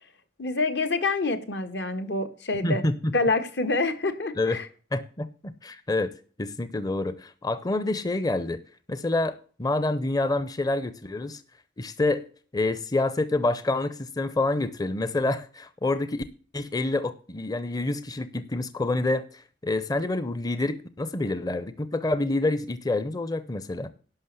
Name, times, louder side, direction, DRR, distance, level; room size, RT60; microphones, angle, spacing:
voice 1, 0.4-2.8 3.1-4.7, left 3 dB, 75° left, 1.6 m, -27 dB
voice 2, 4.9-6.1 6.4-8.6 8.9-11.4 11.8-12.3 12.5-16.2 16.5-23.9, left 2 dB, 20° left, 0.6 m, -27 dB
11.5 x 6.1 x 6.8 m
head